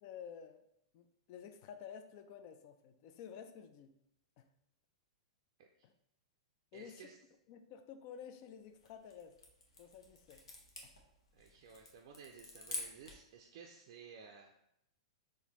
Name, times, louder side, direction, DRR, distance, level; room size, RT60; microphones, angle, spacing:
voice 1, 0.0-0.6 0.9-3.9 4.4-4.5 5.8-5.9 6.7-7.1 7.5-9.3 9.8-10.4 10.8-10.9, left 8 dB, 45° left, 8 dB, 0.4 m, -51 dB
voice 2, 6.7-7.2 11.3-14.5, right 6 dB, 55° right, 2 dB, 0.4 m, -55 dB
sound 1, 8.6-13.3, left 2 dB, 80° left, 0.8 m, -49 dB
4.0 x 2.6 x 2.9 m, 0.78 s
hypercardioid pair, 110°, 3 cm